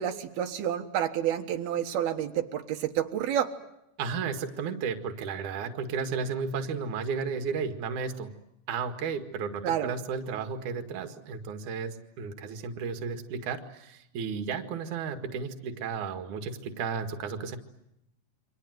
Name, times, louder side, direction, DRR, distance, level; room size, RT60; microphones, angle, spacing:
voice 1, 0.0-3.5 9.6-9.9, right 10 dB, 85° right, 4 dB, 3.4 m, -29 dB
voice 2, 4.0-8.3 8.7-17.6, right 5 dB, 60° right, 6 dB, 3.1 m, -33 dB
29.0 x 25.5 x 7.9 m, 0.81 s
omnidirectional pair, 4.3 m